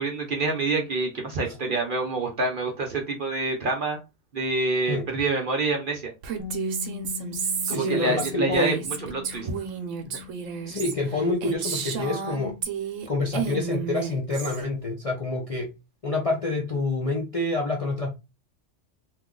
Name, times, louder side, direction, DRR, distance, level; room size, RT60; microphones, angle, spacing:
voice 1, 0.0-4.0 4.3-6.1 7.7-8.8 9.1-9.5 10.0-10.2, right 3 dB, 50° right, 0.8 m, -27 dB
Female speech woman speaking, 6.2-13.1 13.3-14.6, right 7 dB, 75° right, 1.0 m, -31 dB
Bass guitar, 6.4-12.6, left 9 dB, 20° right, 0.7 m, -41 dB
voice 2, 7.6-8.8 10.6-12.6 13.1-15.7 16.0-18.1, left 2 dB, 40° left, 0.5 m, -27 dB
3.0 x 2.3 x 3.7 m
omnidirectional pair, 1.4 m